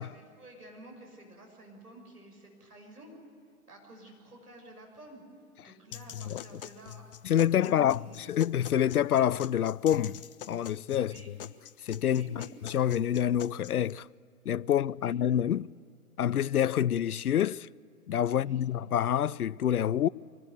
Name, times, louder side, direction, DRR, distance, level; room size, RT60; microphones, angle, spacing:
voice 1, 0.0-3.1 3.7-5.2 5.6-7.0 7.4-8.2 11.0-11.3 12.1-12.5 15.0-15.2 18.3-18.6, right 1 dB, 85° right, 6.4 m, -51 dB
sound 1, 5.9-13.9, left 10 dB, 40° left, 0.7 m, -45 dB
voice 2, 7.2-10.2 10.5-11.4 11.8-14.1 14.5-15.7 16.2-17.7 18.1-20.1, left 10 dB, 75° left, 0.5 m, -27 dB
24.5 x 20.0 x 8.1 m
figure-of-eight pair, 120°, 45 cm